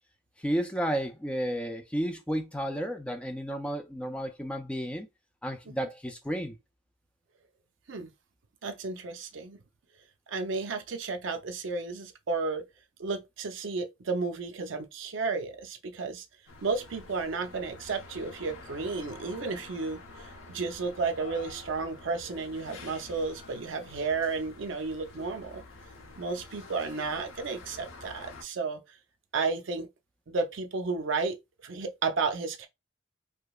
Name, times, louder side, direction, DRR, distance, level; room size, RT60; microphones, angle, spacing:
voice 1, 0.4-5.1 5.4-6.6, equal, 5° left, 0.4 m, -32 dB
voice 2, 8.6-9.6 10.3-12.6 13.0-16.3 16.6-25.6 26.2-28.8 29.3-29.9 30.3-32.7, right 4 dB, 60° right, 0.5 m, -33 dB
sound 1, 16.5-28.4, left 3 dB, 85° left, 0.8 m, -48 dB
4.8 x 2.0 x 2.3 m
head